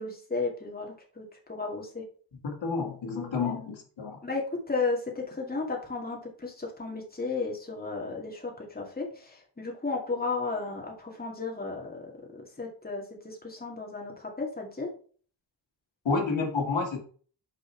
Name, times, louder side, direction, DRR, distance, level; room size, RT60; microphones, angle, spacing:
voice 1, 0.0-2.0 3.3-3.6 4.2-12.1 12.3-14.9, left 3 dB, 20° left, -1 dB, 2.2 m, -34 dB
voice 2, 2.4-4.2 16.0-17.0, left 4 dB, 90° left, 1 dB, 2.2 m, -30 dB
6.4 x 5.4 x 4.5 m, 0.43 s
wide cardioid pair, 125°, 44 cm